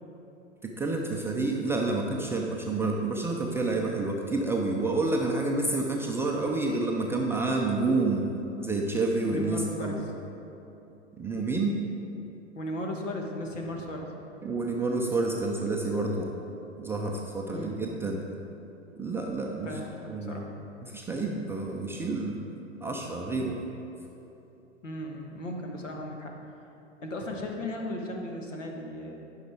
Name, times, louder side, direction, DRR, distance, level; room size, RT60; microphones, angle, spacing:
voice 1, 0.6-8.3 8.6-10.0 11.2-11.8 14.4-16.3 16.8-18.2 19.0-19.8 20.1-20.5 20.8-22.5 22.8-23.6, right 3 dB, 5° right, -1 dB, 0.3 m, -29 dB
voice 2, 9.3-10.0 12.5-14.1 17.5-17.9 19.6-20.4 24.8-26.4 27.0-29.2, left 1 dB, 80° left, 1 dB, 1.4 m, -36 dB
9.9 x 5.5 x 4.8 m, 2.9 s
hypercardioid pair, 100°, 37 cm